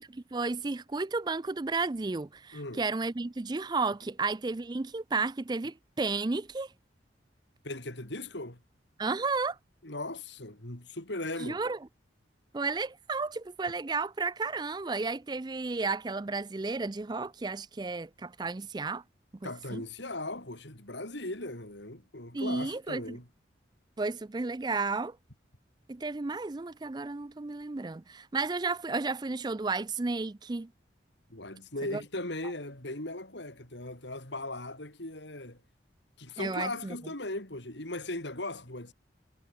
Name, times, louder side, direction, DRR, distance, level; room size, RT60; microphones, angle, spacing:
voice 1, 0.0-6.7 9.0-9.6 11.4-11.8 12.5-19.0 19.4-19.8 22.3-23.2 24.0-25.2 25.9-30.7 31.9-32.0 36.4-37.0, right 3 dB, 20° right, 0.4 m, -33 dB
voice 2, 7.6-8.6 9.8-11.6 19.4-23.3 31.3-35.6 36.2-38.9, left 2 dB, 70° left, 4.4 m, -38 dB
head